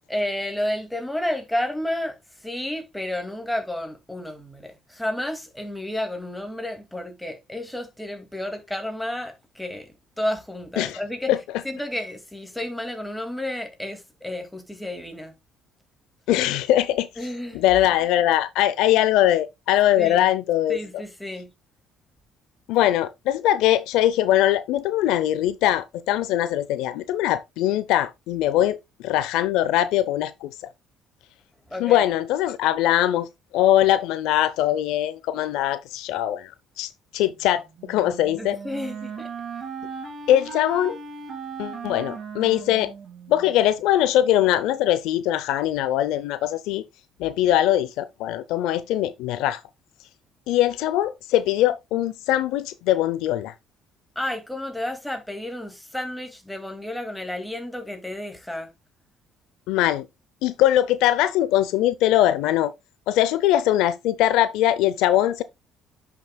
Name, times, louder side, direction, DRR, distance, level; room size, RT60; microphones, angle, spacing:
voice 1, 0.1-2.2 2.4-9.9 10.2-11.3 11.6-15.3 17.2-17.6 20.0-20.3 20.7-21.5 31.7-32.1 38.4-39.3 54.2-58.7, left 1 dB, 5° left, 2.1 m, -31 dB
voice 2, 16.3-17.1 17.5-21.0 22.7-28.8 29.0-30.5 31.8-33.3 33.5-36.5 36.8-38.6 40.3-41.0 41.6-42.9 43.3-46.8 47.2-49.6 50.5-53.5 59.7-60.1 60.4-62.7 63.1-65.4, left 13 dB, 85° left, 0.6 m, -21 dB
Wind instrument woodwind instrument, 37.8-43.6, right 5 dB, 45° right, 2.9 m, -37 dB
10.5 x 6.0 x 2.3 m
cardioid pair, 90°, 0 cm